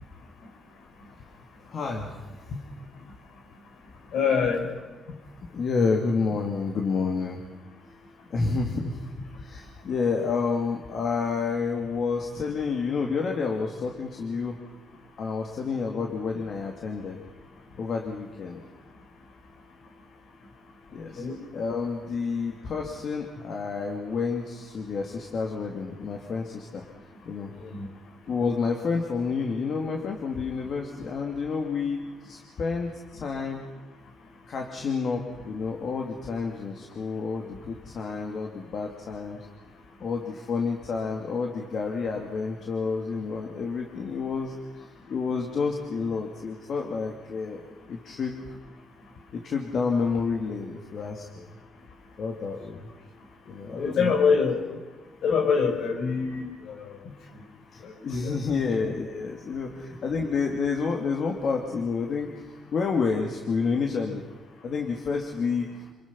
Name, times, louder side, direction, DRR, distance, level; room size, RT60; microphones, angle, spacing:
voice 1, 1.7-2.2 2.5-2.6 5.1-7.4 8.3-9.0 9.4-14.6 15.2-17.2 17.8-18.6 20.9-21.2 21.5-26.8 27.3-27.5 28.3-33.6 34.5-39.4 40.0-44.5 45.1-47.6 47.9-48.3 49.3-51.5 52.2-52.9 53.5-54.2 57.0-57.2 57.7-62.4 62.7-64.2 64.6-65.7, left 5 dB, 55° left, 1 dB, 2.6 m, -29 dB
voice 2, 4.1-4.7 21.1-21.3 53.8-54.6 55.2-56.5 58.1-58.4 58.8-58.9, left 5 dB, 75° left, 4 dB, 4.5 m, -24 dB
28.0 x 21.5 x 5.7 m, 1.2 s
cardioid pair, 90°, 0 cm